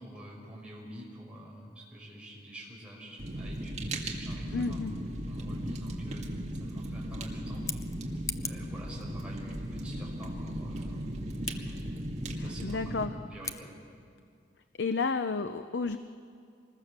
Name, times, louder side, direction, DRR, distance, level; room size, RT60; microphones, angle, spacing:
voice 1, 0.0-4.8 5.3-7.8 8.4-11.8 12.4-13.1 13.3-13.7, equal, 5° right, -4 dB, 5.6 m, -47 dB
Fire, 3.2-13.1, right 1 dB, 40° right, 2.1 m, -37 dB
voice 2, 4.5-4.9 12.4-13.1 14.8-16.0, left 4 dB, 75° left, 9 dB, 0.7 m, -31 dB
Scissors, 7.5-8.7 11.4-11.6 13.4-13.6, left 5 dB, 20° left, 0.6 m, -39 dB
26.0 x 21.0 x 6.8 m, 2.3 s
head